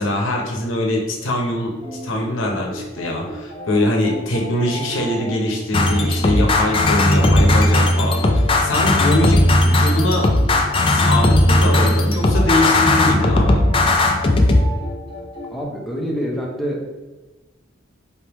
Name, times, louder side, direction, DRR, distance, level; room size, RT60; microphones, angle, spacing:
voice 1, 0.0-1.7 2.0-10.3 10.8-13.6, left 1 dB, 80° left, 0 dB, 0.9 m, -22 dB
sound 1, 1.8-15.6, equal, 25° right, 1.0 m, -34 dB
sound 2, 5.7-14.6, left 1 dB, 25° left, 0.4 m, -16 dB
voice 2, 15.5-16.9, equal, ahead, -3 dB, 0.7 m, -26 dB
4.3 x 3.5 x 3.0 m, 1.2 s
head